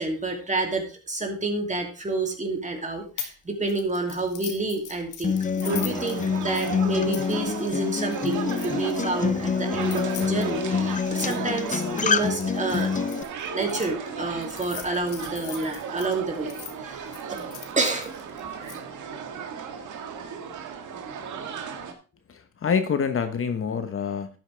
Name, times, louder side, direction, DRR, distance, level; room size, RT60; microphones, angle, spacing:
voice 1, 0.0-13.0 13.5-16.5 16.8-17.4 17.8-18.1, right 2 dB, 25° right, 3 dB, 2.9 m, -29 dB
sound 1, 3.2-3.4 3.7-9.0 9.7-13.9 14.4-16.7 17.1-18.8, left 9 dB, 85° left, 1.7 m, -41 dB
Acoustic guitar, 5.2-13.2, left 6 dB, 25° left, 0.6 m, -27 dB
sound 2, 5.6-21.9, right 6 dB, 80° right, 1.8 m, -35 dB
voice 2, 22.3-24.3, left 6 dB, 45° left, 9 dB, 1.2 m, -26 dB
12.0 x 9.2 x 3.5 m, 0.34 s
cardioid pair, 90°, 30 cm